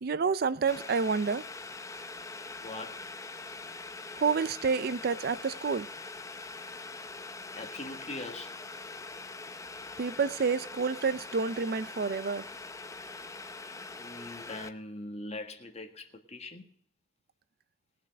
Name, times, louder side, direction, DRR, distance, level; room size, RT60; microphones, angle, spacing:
voice 1, 0.0-1.4 4.2-5.9 10.0-12.4, right 5 dB, 55° right, 0.5 m, -29 dB
Boiling, 0.7-14.7, left 3 dB, 20° left, 0.7 m, -43 dB
voice 2, 2.6-3.0 7.5-8.5 14.0-16.6, left 2 dB, 35° left, 1.7 m, -41 dB
19.5 x 6.6 x 6.4 m
head